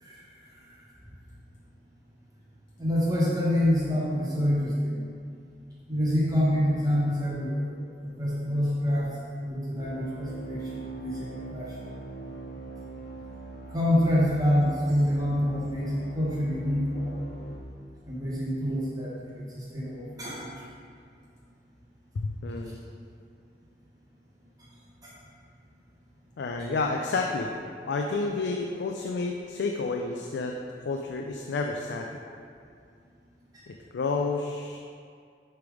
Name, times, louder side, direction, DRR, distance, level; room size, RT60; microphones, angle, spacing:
voice 1, 2.8-5.1 5.9-7.7 8.0-10.7 10.9-11.8 13.7-17.2 18.1-20.5 25.0-25.1 26.6-26.7 33.5-33.6, equal, 20° right, -7 dB, 1.0 m, -27 dB
sound 1, 9.8-17.6, right 3 dB, 55° left, 0.8 m, -42 dB
voice 2, 22.1-22.8 26.4-27.5 27.8-30.6 30.8-32.2 33.7-34.8, left 3 dB, 75° left, 2 dB, 0.4 m, -30 dB
6.7 x 3.4 x 4.9 m, 2.3 s
head